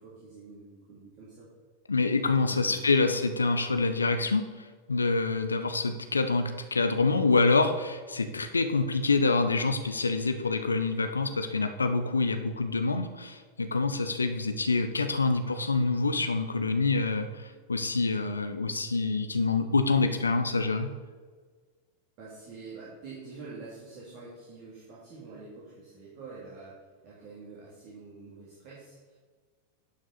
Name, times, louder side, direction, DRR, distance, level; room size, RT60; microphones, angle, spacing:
voice 1, 0.0-1.5 2.4-2.8 22.2-29.2, right 4 dB, 45° right, -7 dB, 2.7 m, -46 dB
voice 2, 1.9-20.9, left 3 dB, 75° left, 8 dB, 0.7 m, -26 dB
11.5 x 6.1 x 4.2 m, 1.5 s
figure-of-eight pair, 90°, 0 cm